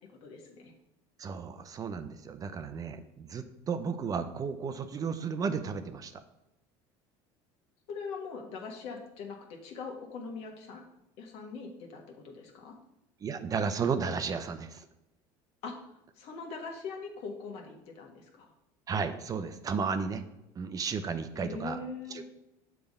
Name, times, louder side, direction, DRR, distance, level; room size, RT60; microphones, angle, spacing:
voice 1, 0.2-0.7 7.9-10.8 11.2-12.8 15.6-15.7 16.1-18.5 21.3-22.2, left 4 dB, 65° left, 2 dB, 1.5 m, -42 dB
voice 2, 1.2-6.2 13.2-14.9 18.9-20.2 20.6-21.8 22.1-22.2, right 5 dB, 35° right, 9 dB, 0.5 m, -33 dB
6.9 x 3.4 x 5.3 m, 0.88 s
supercardioid pair, 110°, 11 cm